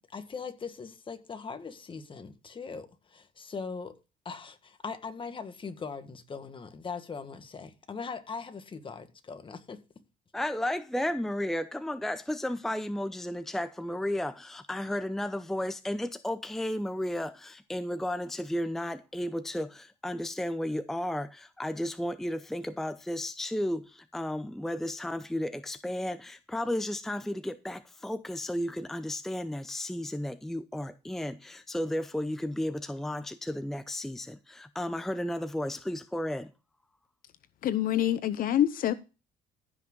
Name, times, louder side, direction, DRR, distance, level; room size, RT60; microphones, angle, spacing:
voice 1, 0.0-4.0 4.3-9.8, left 5 dB, 30° left, 1.6 m, -40 dB
voice 2, 10.3-36.5, left 1 dB, ahead, 0.6 m, -33 dB
voice 3, 37.6-38.9, left 11 dB, 55° left, 0.7 m, -26 dB
15.0 x 6.1 x 3.8 m
cardioid pair, 110°, 17 cm